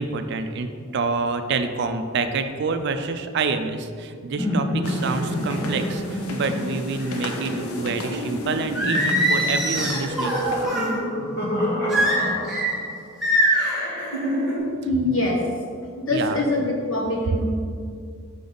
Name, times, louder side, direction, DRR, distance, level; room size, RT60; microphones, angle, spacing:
voice 1, 0.0-10.4 15.0-15.2 16.1-16.4, right 4 dB, 50° right, 8 dB, 0.4 m, -27 dB
sound 1, 4.4-12.9 13.5-14.6, equal, 50° left, 1.4 m, -28 dB
sound 2, 4.8-10.7, left 2 dB, 90° left, 0.7 m, -37 dB
Singing, 8.7-10.9 11.9-12.7 13.2-13.7, right 1 dB, ahead, 1.0 m, -22 dB
voice 2, 14.8-15.4 16.1-17.4, left 2 dB, 70° left, -1 dB, 1.3 m, -23 dB
5.8 x 4.0 x 5.1 m, 2.2 s
head